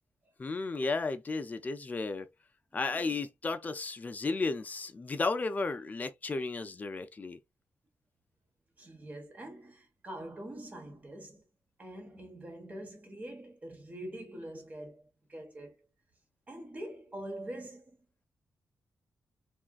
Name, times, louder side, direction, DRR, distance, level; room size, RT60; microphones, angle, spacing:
voice 1, 0.4-2.3 2.7-7.4, left 3 dB, 25° left, 0.4 m, -33 dB
voice 2, 2.7-3.1 8.8-11.4 11.8-15.8 16.5-18.0, right 1 dB, 25° right, 1.1 m, -44 dB
3.5 x 2.4 x 2.3 m
wide cardioid pair, 130°, 6 cm